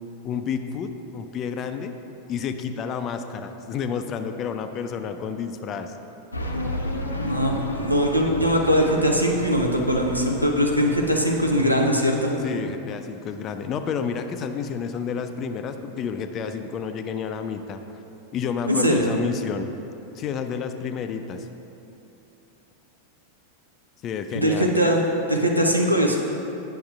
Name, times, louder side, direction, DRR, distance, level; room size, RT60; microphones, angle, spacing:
voice 1, 0.2-1.9 2.3-5.9 12.4-17.8 18.3-19.7 20.2-21.5 24.0-24.7, left 6 dB, 30° left, 8 dB, 0.4 m, -30 dB
sound 1, 6.3-11.8, left 1 dB, 80° left, 0.5 m, -32 dB
voice 2, 7.2-12.4 18.7-19.1 24.3-25.0 25.3-26.2, equal, 90° right, 1 dB, 0.6 m, -21 dB
9.9 x 6.2 x 2.4 m, 2.9 s
figure-of-eight pair, 90°, 0 cm